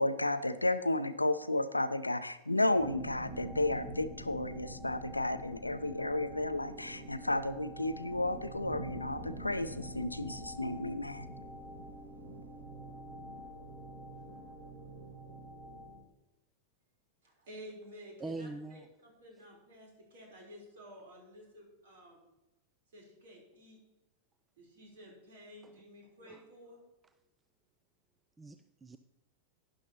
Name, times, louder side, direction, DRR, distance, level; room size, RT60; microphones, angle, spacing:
voice 1, 0.0-11.3, left 2 dB, 85° left, 13 dB, 0.5 m, -32 dB
sound 1, 2.7-16.0, right 1 dB, 35° right, 3.5 m, -46 dB
voice 2, 17.2-22.3 22.9-23.8 24.6-26.9, equal, 60° right, -1 dB, 3.6 m, -52 dB
voice 3, 18.2-18.9 25.6-25.7 26.2-26.4 28.4-29.0, right 3 dB, 15° right, 10 dB, 0.4 m, -43 dB
12.0 x 10.5 x 2.9 m, 0.97 s
figure-of-eight pair, 90°, 0 cm